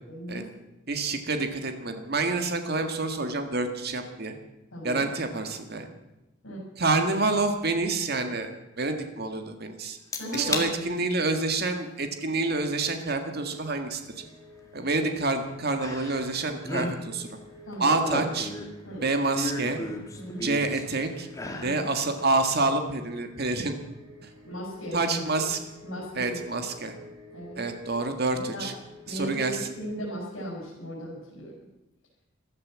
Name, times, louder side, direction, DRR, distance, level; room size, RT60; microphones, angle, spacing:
voice 1, 0.1-0.5 4.7-5.1 6.4-6.6 10.2-10.7 17.7-18.0 18.8-19.0 20.1-20.5 21.6-21.7 24.4-25.4 25.8-26.4 27.3-27.6 28.5-28.7 29.1-31.5, right 1 dB, 80° left, -3 dB, 5.0 m, -36 dB
voice 2, 0.9-4.3 4.8-5.9 6.8-10.0 10.3-14.0 14.7-17.3 17.8-18.5 19.0-19.8 20.4-21.3 21.6-23.7 24.2-24.3 24.9-25.6 26.2-26.9 27.6-28.7 29.1-29.6, right 3 dB, 50° right, 6 dB, 1.7 m, -27 dB
sound 1, 10.1-10.7 11.1-11.5 13.1-13.2 15.8-16.3 16.6-17.0 17.7-18.8 19.3-20.9 21.3-21.8 22.2-22.3, left 2 dB, 15° left, 2.0 m, -33 dB
sound 2, 13.5-30.1, left 1 dB, 80° right, 6.3 m, -51 dB
14.5 x 13.0 x 7.5 m, 0.99 s
head